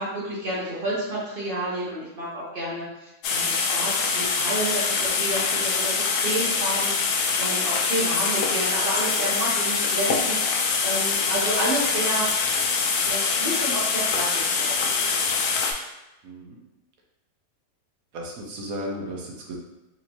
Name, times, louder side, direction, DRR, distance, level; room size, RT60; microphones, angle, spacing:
voice 1, 0.0-12.3 13.0-15.0, right 1 dB, 40° right, -7 dB, 0.9 m, -30 dB
sound 1, 3.2-15.7, left 5 dB, 80° left, 1.1 m, -24 dB
voice 2, 16.2-16.6 18.1-19.6, equal, 65° right, -1 dB, 1.1 m, -34 dB
4.2 x 2.7 x 2.9 m, 0.96 s
omnidirectional pair, 1.7 m